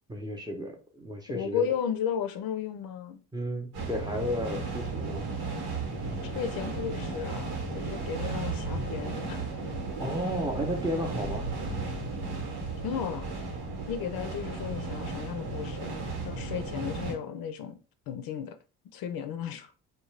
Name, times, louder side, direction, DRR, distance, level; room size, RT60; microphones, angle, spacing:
voice 1, 0.1-1.7 3.3-5.2 10.0-11.5, equal, 10° right, 0.6 m, -33 dB
voice 2, 1.3-3.2 6.2-9.4 12.8-13.3 13.9-15.9 16.2-17.8 18.1-18.6 18.9-19.7, left 8 dB, 65° left, 0.5 m, -34 dB
sound 1, 3.7-17.1, right 3 dB, 80° right, 1.2 m, -34 dB
2.4 x 2.3 x 3.1 m
cardioid pair, 95°, 38 cm